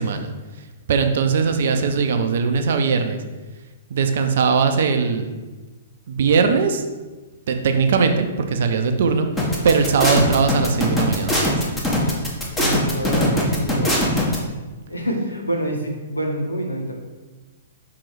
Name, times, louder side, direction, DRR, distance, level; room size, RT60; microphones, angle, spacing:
voice 1, 0.0-3.2 3.9-5.4 6.1-6.8 7.5-11.6, right 5 dB, 55° right, 6 dB, 0.6 m, -20 dB
sound 1, 9.4-14.4, equal, 10° left, 1.3 m, -20 dB
voice 2, 12.6-14.0 14.9-16.9, equal, 80° left, 1 dB, 1.2 m, -26 dB
6.1 x 3.8 x 4.8 m, 1.3 s
figure-of-eight pair, 110°, 0 cm